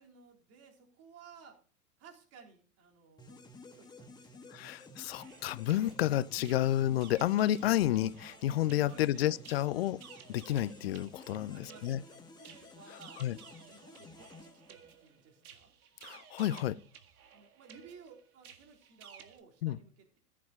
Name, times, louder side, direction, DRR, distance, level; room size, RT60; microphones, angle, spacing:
voice 1, 0.0-1.6 2.0-3.4 3.7-5.3 8.9-9.4 11.5-15.7 17.3-20.2, right 5 dB, 30° right, 3.7 m, -57 dB
sound 1, 3.2-15.3, left 3 dB, 10° left, 1.5 m, -54 dB
voice 2, 4.5-10.0 10.3-12.0 13.2-13.4 16.0-16.8 19.6-19.8, left 13 dB, 40° left, 0.5 m, -30 dB
sound 2, 5.0-19.4, right 8 dB, 65° right, 1.8 m, -56 dB
14.5 x 7.4 x 4.4 m
figure-of-eight pair, 100°, 48 cm